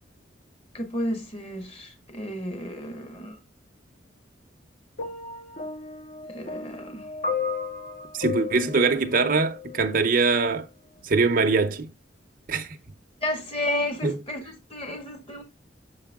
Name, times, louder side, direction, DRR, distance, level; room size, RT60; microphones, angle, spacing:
voice 1, 0.7-3.4 6.3-7.1 13.2-15.4, left 1 dB, 30° left, 1.8 m, -32 dB
sound 1, 5.0-10.1 11.0-11.2, left 5 dB, 50° left, 1.5 m, -34 dB
voice 2, 8.1-10.7 11.0-11.9 12.5-12.8 14.0-14.2, right 4 dB, 50° right, 0.8 m, -22 dB
6.7 x 4.7 x 3.6 m
head